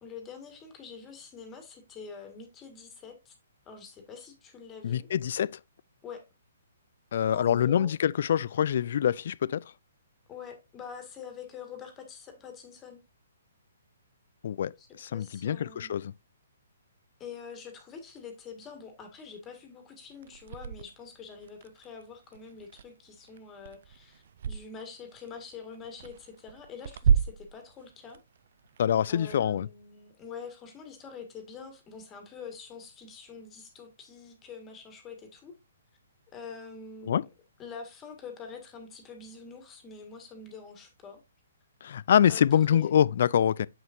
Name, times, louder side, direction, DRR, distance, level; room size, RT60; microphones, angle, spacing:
voice 1, 0.0-3.3 3.7-5.1 6.0-6.2 7.3-7.9 10.3-13.0 14.8-15.9 17.2-28.2 29.1-35.5 36.3-37.3 37.6-41.2 42.2-42.9, left 5 dB, 20° left, 2.0 m, -45 dB
voice 2, 4.8-5.6 7.1-9.6 14.4-14.7 15.0-16.1 28.8-29.7 37.1-37.2 41.8-43.7, left 9 dB, 60° left, 0.4 m, -25 dB
sound 1, 20.1-24.6 25.0-29.6, right 7 dB, 60° right, 0.4 m, -32 dB
7.5 x 6.4 x 2.6 m
hypercardioid pair, 135°, 0 cm